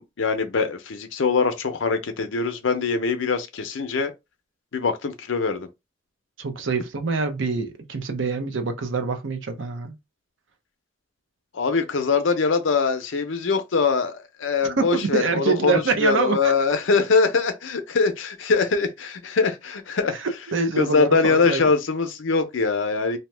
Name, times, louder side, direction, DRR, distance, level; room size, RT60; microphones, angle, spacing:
voice 1, 0.0-4.1 4.7-5.7 11.5-20.2 20.8-23.2, left 4 dB, 70° left, 0.6 m, -23 dB
voice 2, 6.4-10.0 14.6-16.5 20.2-21.6, right 4 dB, 70° right, 0.6 m, -25 dB
2.8 x 2.1 x 3.3 m
head